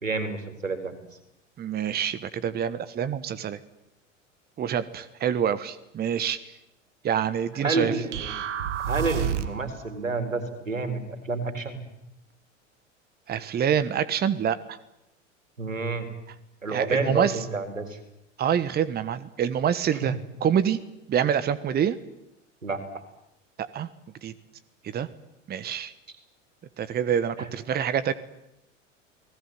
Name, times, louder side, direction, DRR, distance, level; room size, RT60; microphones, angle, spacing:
voice 1, 0.0-1.0 7.6-8.3 8.9-11.8 15.6-16.1 16.6-18.0 20.0-20.1 22.6-22.8 27.4-27.5, right 3 dB, 80° right, 9 dB, 4.1 m, -29 dB
voice 2, 1.6-3.6 4.6-6.4 7.0-7.9 13.3-14.8 16.7-17.4 18.4-20.1 20.4-20.8 21.1-22.0 23.6-23.9 24.2-24.3 24.9-25.1 25.5-25.9 26.8-28.1, right 8 dB, 25° right, 15 dB, 1.4 m, -26 dB
sound 1, 8.1-9.7, right 9 dB, 65° right, 2.0 m, -29 dB
29.5 x 19.5 x 9.5 m, 0.85 s
figure-of-eight pair, 80°, 38 cm